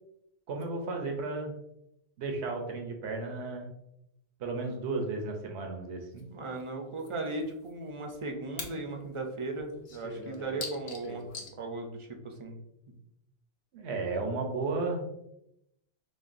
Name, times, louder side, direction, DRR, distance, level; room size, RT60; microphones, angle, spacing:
voice 1, 0.5-1.5 2.2-3.7 4.4-6.3 13.7-15.1, right 3 dB, 85° right, 3 dB, 1.0 m, -34 dB
sound 1, 6.2-6.3 6.6-6.7 7.0-7.1 7.4-8.8 9.0-9.1 9.6-11.5, left 3 dB, 55° left, 0.8 m, -42 dB
voice 2, 6.3-11.3 11.6-12.6 12.9-13.0, right 2 dB, 40° right, 3 dB, 0.5 m, -37 dB
6.3 x 2.3 x 2.5 m, 0.84 s
omnidirectional pair, 1.1 m